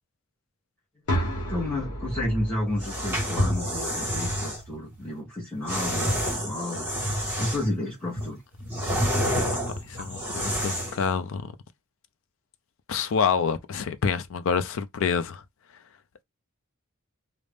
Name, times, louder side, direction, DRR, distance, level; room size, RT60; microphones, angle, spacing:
sound 1, 1.1-5.0, equal, 85° left, 0.9 m, -33 dB
voice 1, 1.5-6.9 7.4-8.4, left 1 dB, 10° left, 0.9 m, -31 dB
sound 2, 2.7-4.6 5.7-7.8 8.2-11.1, equal, 10° right, 1.2 m, -28 dB
voice 2, 9.9-11.5 12.9-15.4, left 6 dB, 60° left, 0.4 m, -27 dB
2.5 x 2.0 x 3.3 m
head